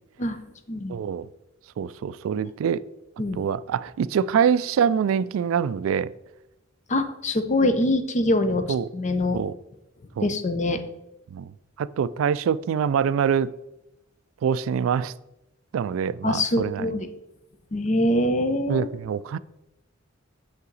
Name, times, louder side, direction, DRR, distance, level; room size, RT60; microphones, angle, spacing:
voice 1, 0.9-1.3 1.8-2.8 3.4-6.1 8.7-8.9 9.3-9.5 10.2-10.3 11.3-11.5 11.8-13.5 14.4-15.1 15.7-16.9 18.7-19.4, right 7 dB, 80° right, 0.3 m, -24 dB
voice 2, 6.9-9.4 10.2-10.8 16.2-17.1 17.7-18.9, left 1 dB, 35° left, 0.6 m, -24 dB
6.7 x 5.5 x 4.0 m
head